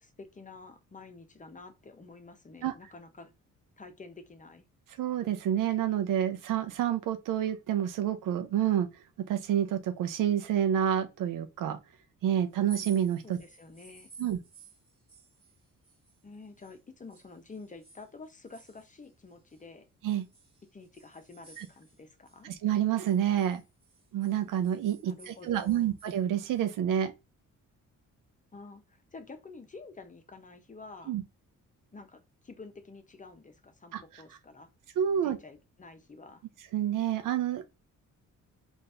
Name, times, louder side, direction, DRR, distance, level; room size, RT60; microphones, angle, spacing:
voice 1, 0.0-3.3 3.8-4.7 13.2-14.1 16.2-19.9 20.7-22.5 25.1-26.0 28.5-31.1 31.9-34.7 35.2-36.4, left 3 dB, 25° left, 0.8 m, -49 dB
voice 2, 5.0-11.8 12.2-13.4 14.2-14.4 20.0-20.2 21.6-21.7 22.4-23.6 24.1-27.1 31.1-31.2 33.9-34.0 35.0-35.4 36.7-37.7, right 10 dB, 75° right, 0.6 m, -28 dB
sound 1, 12.5-16.8 17.1-19.6 20.1-22.4 22.7-26.2, right 4 dB, 15° right, 1.4 m, -54 dB
4.0 x 2.6 x 3.3 m
cardioid pair, 105°, 32 cm